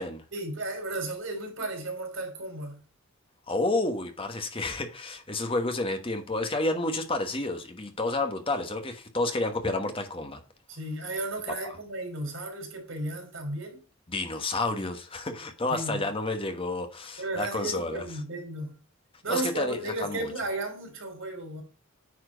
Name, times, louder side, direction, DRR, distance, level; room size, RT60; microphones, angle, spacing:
voice 1, 0.3-2.8 10.7-13.8 15.7-16.1 17.2-18.8 19.2-21.6, right 2 dB, 65° right, 3.6 m, -34 dB
voice 2, 3.5-10.4 14.1-18.0 19.3-20.3, left 2 dB, 25° left, 1.2 m, -30 dB
9.5 x 4.5 x 5.0 m
head